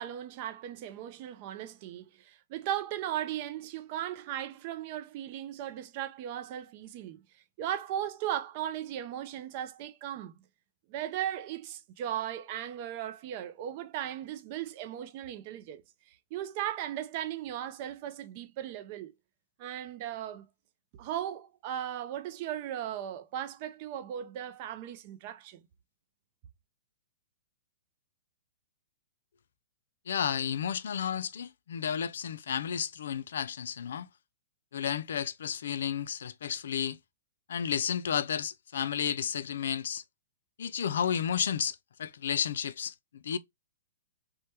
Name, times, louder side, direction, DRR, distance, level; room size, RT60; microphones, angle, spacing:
voice 1, 0.0-7.2 7.6-10.3 10.9-15.8 16.3-19.1 19.6-20.5 20.9-25.6, right 11 dB, 40° right, 0.4 m, -37 dB
voice 2, 30.1-34.1 34.7-37.0 37.5-40.0 40.6-42.9 43.2-43.4, left 8 dB, 75° left, 0.3 m, -32 dB
3.2 x 2.1 x 2.8 m
hypercardioid pair, 150°, 0 cm